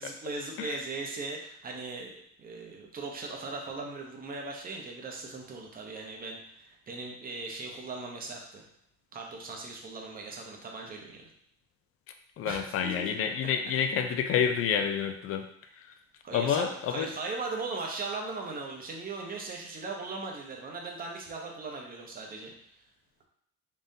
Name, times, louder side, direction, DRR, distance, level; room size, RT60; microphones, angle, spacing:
voice 1, 0.0-8.6 9.1-11.3 12.4-13.2 16.2-22.5, right 3 dB, 25° right, 0 dB, 0.7 m, -39 dB
voice 2, 12.4-15.4 15.8-15.9 16.3-17.1, left 7 dB, 45° left, 7 dB, 0.4 m, -28 dB
3.9 x 3.6 x 2.7 m, 0.68 s
cardioid pair, 160°, 33 cm